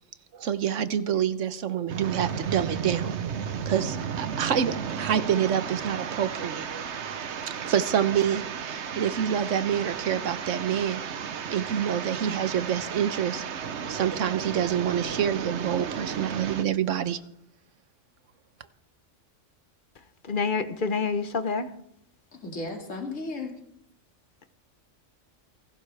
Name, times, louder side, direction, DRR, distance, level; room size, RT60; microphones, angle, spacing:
voice 1, 0.3-3.1 3.7-6.8 7.6-11.1 11.5-13.4 13.9-17.2, right 9 dB, 85° right, 12 dB, 1.2 m, -27 dB
sound 1, 1.9-16.6, right 7 dB, 65° right, 1.1 m, -34 dB
voice 2, 20.3-21.7, left 4 dB, 45° left, 10 dB, 1.1 m, -27 dB
voice 3, 22.3-23.6, left 2 dB, 90° left, 1 dB, 2.7 m, -35 dB
29.0 x 11.5 x 3.4 m, 0.73 s
omnidirectional pair, 1.3 m